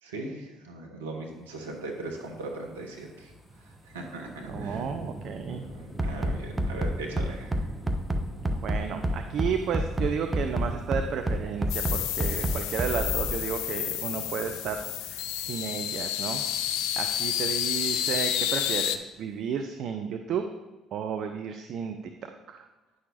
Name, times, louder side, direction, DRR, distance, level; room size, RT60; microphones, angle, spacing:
voice 1, 0.0-3.3 3.6-4.9 5.7-7.7, right 2 dB, 85° right, 0 dB, 1.3 m, -39 dB
sound 1, 1.3-19.5 19.9-20.0, equal, ahead, 1.5 m, -46 dB
voice 2, 4.5-5.7 8.4-16.4 17.0-20.5 20.9-22.0 22.5-22.7, right 7 dB, 60° right, 6 dB, 0.5 m, -32 dB
Bass drum, 6.0-13.4, right 1 dB, 20° right, 0.9 m, -27 dB
sound 2, 11.7-19.0, left 11 dB, 70° left, 0.4 m, -30 dB
9.7 x 6.4 x 4.1 m, 1.2 s
hypercardioid pair, 55°, 0 cm